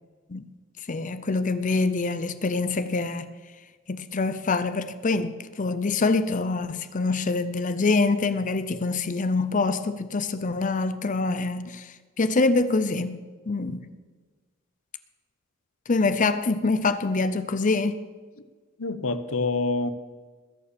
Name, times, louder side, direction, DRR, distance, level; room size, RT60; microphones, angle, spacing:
voice 1, 0.9-3.3 3.9-13.9 15.9-18.0, left 3 dB, 40° left, 0.6 m, -25 dB
voice 2, 18.8-19.9, left 3 dB, 75° left, 0.9 m, -26 dB
20.5 x 7.0 x 6.9 m
head